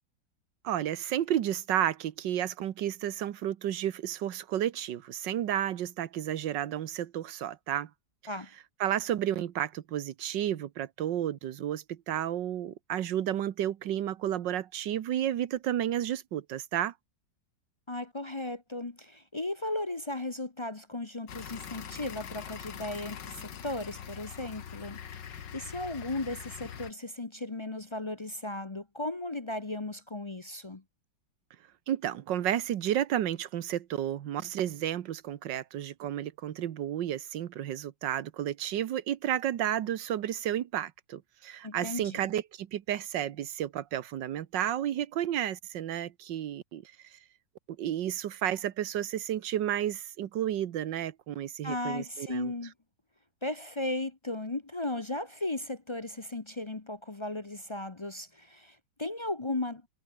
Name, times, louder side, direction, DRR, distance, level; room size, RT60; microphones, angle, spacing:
voice 1, 0.6-7.9 8.8-16.9 31.9-47.2 47.8-52.5, right 11 dB, 85° right, 1.7 m, -32 dB
voice 2, 17.9-30.8 41.6-42.3 51.6-52.7 53.4-59.8, left 2 dB, 25° left, 0.6 m, -36 dB
sound 1, 21.3-26.9, left 8 dB, 80° left, 2.1 m, -43 dB
omnidirectional pair, 1.9 m